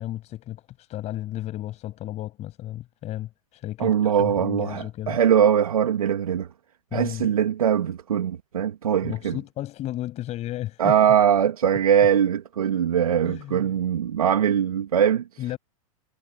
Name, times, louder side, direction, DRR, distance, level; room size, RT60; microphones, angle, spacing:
voice 1, 0.0-5.2 6.9-7.3 9.0-10.9 13.2-13.7 15.4-15.6, left 14 dB, 35° left, 7.6 m, -33 dB
voice 2, 3.8-6.5 6.9-9.4 10.8-15.3, right 9 dB, 80° right, 2.0 m, -21 dB
hypercardioid pair, 105°, 18 cm